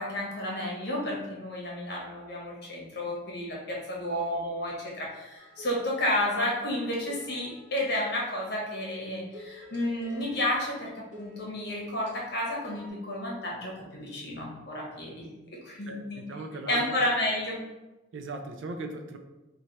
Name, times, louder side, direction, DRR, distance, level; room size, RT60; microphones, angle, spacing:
voice 1, 0.0-16.2 16.7-17.6, left 1 dB, 60° left, -3 dB, 1.1 m, -31 dB
sound 1, 5.4-8.6 9.3-12.9, equal, 40° right, 0.9 m, -51 dB
voice 2, 15.9-16.9 18.1-19.2, right 3 dB, 80° right, 5 dB, 0.4 m, -38 dB
3.2 x 2.3 x 4.0 m, 1.1 s
head